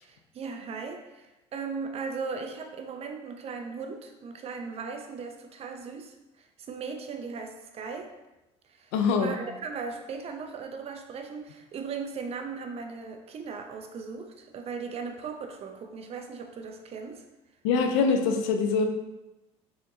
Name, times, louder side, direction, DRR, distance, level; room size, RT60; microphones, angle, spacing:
voice 1, 0.0-8.1 8.6-8.9 9.2-17.2, right 5 dB, 45° right, 5 dB, 0.6 m, -38 dB
voice 2, 8.9-9.3 17.6-18.9, left 5 dB, 85° left, 5 dB, 0.5 m, -24 dB
4.3 x 3.7 x 2.8 m, 1.0 s
supercardioid pair, 85°, 14 cm